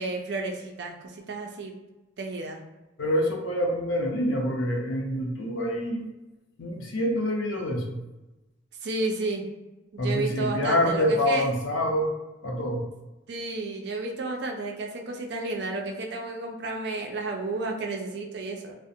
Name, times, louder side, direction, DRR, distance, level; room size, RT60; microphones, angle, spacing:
voice 1, 0.0-1.7 2.2-2.6 8.8-9.5 9.9-11.5 13.3-18.8, right 3 dB, 60° right, 2 dB, 0.4 m, -32 dB
voice 2, 3.0-6.1 6.6-8.0 10.0-12.1 12.4-12.9, equal, 80° left, 1 dB, 0.5 m, -26 dB
2.4 x 2.0 x 2.7 m, 1.0 s
head